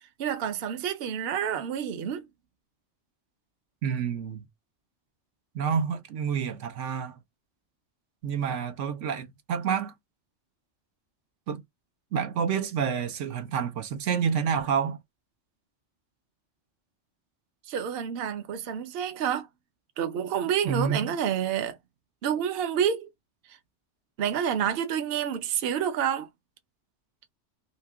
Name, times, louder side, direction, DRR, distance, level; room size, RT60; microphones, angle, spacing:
voice 1, 0.2-2.2 17.7-19.5 20.0-21.8 22.2-23.1 23.5-23.6 24.2-26.3, right 8 dB, 60° right, 0.8 m, -28 dB
voice 2, 3.8-4.5 5.5-7.2 8.2-9.9 11.5-11.6 12.1-15.0 20.6-21.1, right 7 dB, 80° right, 1.0 m, -28 dB
2.9 x 2.8 x 3.4 m
omnidirectional pair, 1.3 m